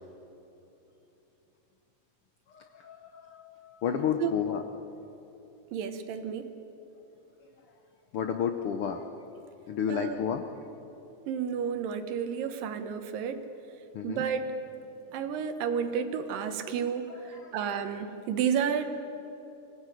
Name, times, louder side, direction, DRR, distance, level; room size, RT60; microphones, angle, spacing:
voice 1, 2.5-4.6 8.1-9.0 9.7-10.4 13.9-14.2 17.1-17.5, left 8 dB, 85° left, 7 dB, 1.2 m, -31 dB
voice 2, 5.7-6.5 9.9-10.2 11.3-13.4 14.0-14.5 15.1-18.9, right 7 dB, 90° right, 8 dB, 2.9 m, -31 dB
24.5 x 16.5 x 9.2 m, 3.0 s
omnidirectional pair, 3.8 m